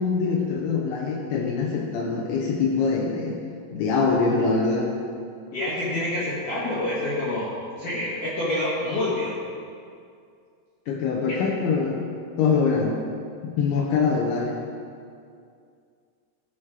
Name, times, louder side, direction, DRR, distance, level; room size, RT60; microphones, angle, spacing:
voice 1, 0.0-3.4 3.7-4.9 10.9-12.1 12.4-13.0 13.4-14.6, left 4 dB, 80° left, -2 dB, 3.2 m, -24 dB
voice 2, 5.5-7.5 7.8-9.4 11.3-11.4, left 1 dB, 55° left, -9 dB, 2.7 m, -27 dB
15.5 x 6.3 x 5.0 m, 2.3 s
omnidirectional pair, 5.4 m